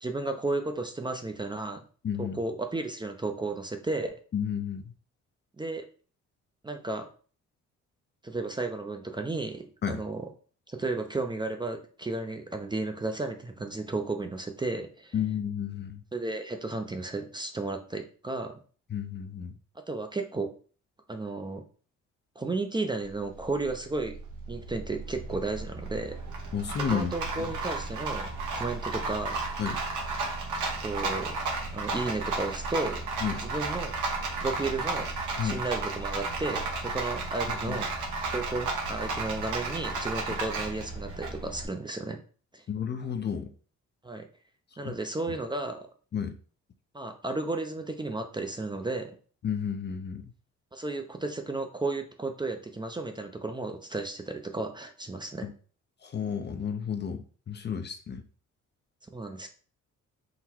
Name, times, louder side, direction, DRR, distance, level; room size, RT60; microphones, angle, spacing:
voice 1, 0.0-1.8 2.2-4.1 5.6-5.8 6.6-7.1 8.2-10.3 10.7-15.1 16.1-18.6 19.9-20.5 21.1-21.6 22.4-24.1 24.5-26.2 26.9-29.4 30.8-31.4 31.7-33.0 33.4-33.9 34.4-35.1 35.4-37.9 38.3-42.2 42.5-42.6 44.0-44.3 44.8-45.9 46.9-49.2 50.7-55.5 59.1-59.5, right 2 dB, 15° right, 5 dB, 0.5 m, -33 dB
voice 2, 2.0-2.4 4.3-4.9 9.8-10.0 15.1-16.0 18.9-19.5 26.5-27.1 29.6-29.8 33.2-33.5 35.4-35.6 37.7-37.8 42.7-43.5 44.8-44.9 46.1-46.4 49.4-50.3 55.4-55.5 56.0-58.2, left 7 dB, 35° left, 7 dB, 0.5 m, -32 dB
Rattle, 23.1-41.7, right 3 dB, 80° right, 1.1 m, -33 dB
3.9 x 2.1 x 4.4 m, 0.41 s
cardioid pair, 90°, 30 cm